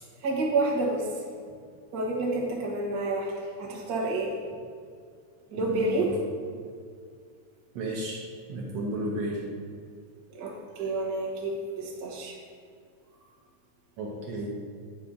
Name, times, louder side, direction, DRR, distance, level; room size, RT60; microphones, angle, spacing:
voice 1, 0.2-1.2 1.9-4.3 5.5-6.1 10.4-12.4, right 2 dB, 55° right, -3 dB, 1.0 m, -29 dB
voice 2, 5.6-6.1 7.8-8.2 8.5-9.4 14.0-14.5, right 2 dB, 70° right, -3 dB, 1.7 m, -33 dB
8.8 x 4.4 x 4.9 m, 2.2 s
omnidirectional pair, 3.6 m